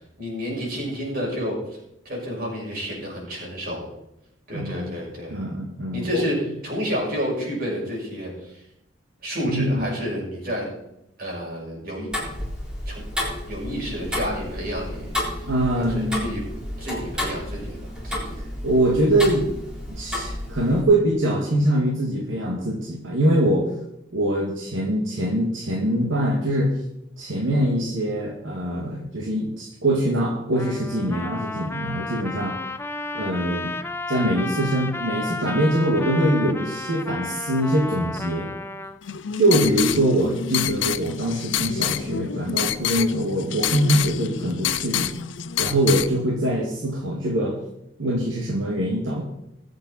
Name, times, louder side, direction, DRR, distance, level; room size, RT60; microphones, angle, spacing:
voice 1, 0.2-1.6 2.0-3.9 4.5-5.5 5.9-8.6 9.2-10.7 11.2-12.1 12.9-13.0 13.5-15.4 15.8-16.4 16.8-18.4, equal, 45° right, -3 dB, 6.2 m, -30 dB
voice 2, 4.5-5.0 5.3-6.2 9.4-9.9 15.5-16.4 18.4-19.5 19.9-23.7 24.1-26.7 27.2-32.6 33.1-33.7 34.1-38.5 39.4-45.1 45.6-47.6 48.0-49.2, right 1 dB, 75° right, -2 dB, 2.2 m, -23 dB
Tick-tock, 12.1-20.8, left 1 dB, 5° right, 3.8 m, -31 dB
Trumpet, 30.6-39.0, left 2 dB, 10° left, 0.6 m, -32 dB
sound 1, 39.0-46.1, left 9 dB, 70° left, 0.6 m, -27 dB
21.5 x 7.9 x 4.3 m, 0.84 s
head